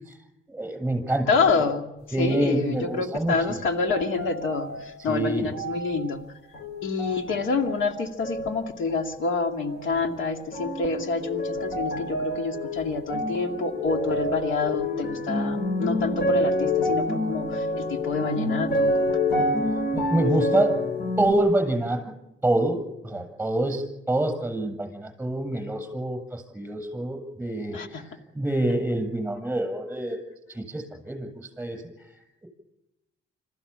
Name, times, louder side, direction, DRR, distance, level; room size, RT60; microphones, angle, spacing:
voice 1, 0.5-1.3 2.1-3.6 5.0-5.5 19.7-20.8 21.2-22.1 22.4-30.2 30.5-32.5, right 1 dB, 10° right, 6 dB, 7.7 m, -27 dB
voice 2, 1.3-1.8 2.2-6.2 6.8-18.9 27.7-28.1, left 4 dB, 80° left, 6 dB, 2.4 m, -27 dB
sound 1, 2.3-3.3 3.9-4.9 5.5-6.2 6.5-7.9 8.2-9.1 9.7-10.2 10.5-21.3, left 1 dB, 55° left, 5.3 m, -28 dB
26.0 x 15.0 x 8.8 m, 0.94 s
cardioid pair, 90°, 20 cm